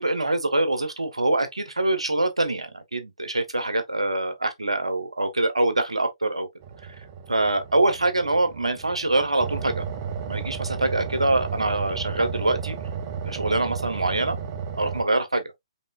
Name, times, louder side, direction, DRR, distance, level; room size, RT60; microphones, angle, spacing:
voice 1, 0.0-6.5 7.3-9.8 10.3-12.8 13.2-14.4 14.8-15.5, right 2 dB, 80° right, 1.4 m, -24 dB
sound 1, 6.6-15.0, right 7 dB, 30° right, 1.1 m, -33 dB
5.2 x 3.8 x 2.6 m
figure-of-eight pair, 130°, 3 cm